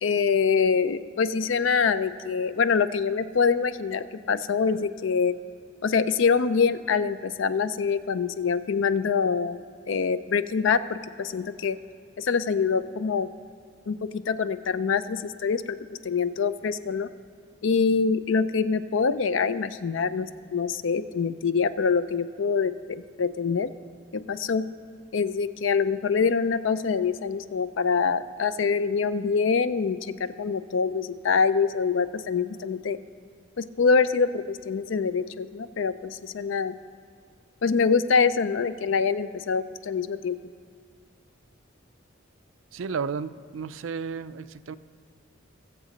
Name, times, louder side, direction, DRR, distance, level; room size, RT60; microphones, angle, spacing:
voice 1, 0.0-5.4 5.8-9.6 9.9-11.8 12.2-13.3 13.9-15.8 16.0-17.1 17.6-23.7 24.1-24.7 25.1-33.0 33.6-36.7 37.6-40.4, left 5 dB, 70° left, 14 dB, 0.5 m, -25 dB
voice 2, 42.7-44.8, right 5 dB, 80° right, 14 dB, 0.4 m, -33 dB
20.5 x 7.3 x 4.0 m, 2.2 s
head